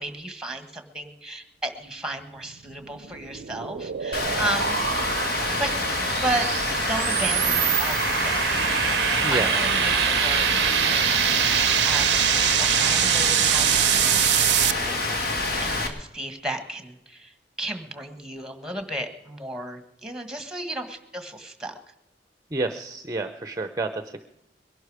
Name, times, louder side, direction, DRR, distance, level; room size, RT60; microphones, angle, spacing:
voice 1, 0.0-4.8 5.6-5.7 6.2-6.5 6.9-8.0 8.2-8.4 9.0-21.7, right 1 dB, 5° right, 8 dB, 1.5 m, -34 dB
sound 1, 2.7-14.7, right 11 dB, 75° right, 0.5 m, -24 dB
Rain, 4.1-15.9, left 2 dB, 60° left, 1.9 m, -27 dB
voice 2, 22.5-24.2, right 2 dB, 20° right, 9 dB, 0.7 m, -29 dB
22.0 x 11.5 x 4.9 m, 0.88 s
head